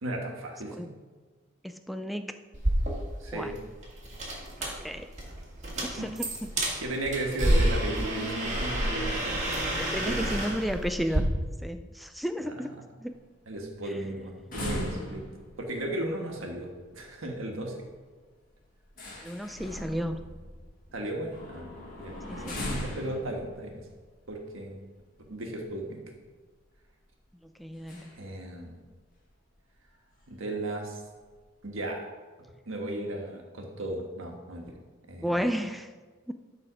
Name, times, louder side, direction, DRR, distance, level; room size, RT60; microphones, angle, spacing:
voice 1, 0.0-0.9 3.2-3.6 5.7-6.1 6.8-9.4 9.9-10.6 12.4-12.5 13.5-15.2 15.6-17.8 20.9-23.8 24.3-24.8 25.3-26.0 28.1-28.8 30.3-31.0 31.6-32.0 32.6-34.8 35.1-35.3, right 1 dB, 90° right, 1 dB, 1.4 m, -35 dB
voice 2, 1.6-2.3 3.3-3.5 4.6-5.1 5.8-6.1 9.8-11.3 11.6-12.7 13.0-13.1 19.2-20.2 22.3-22.7 27.4-28.1 35.2-35.9 36.3-36.4, equal, ahead, 8 dB, 0.4 m, -33 dB
sound 1, 2.5-11.2, right 1 dB, 35° right, 1.9 m, -29 dB
sound 2, 13.1-25.7 26.1-26.2 26.5-26.8 27.7-28.3 28.6-28.7 29.1-29.2 29.8-29.9 30.1-30.5 30.8-31.6, left 1 dB, 45° left, 1.8 m, -40 dB
12.0 x 4.1 x 5.0 m, 1.4 s
head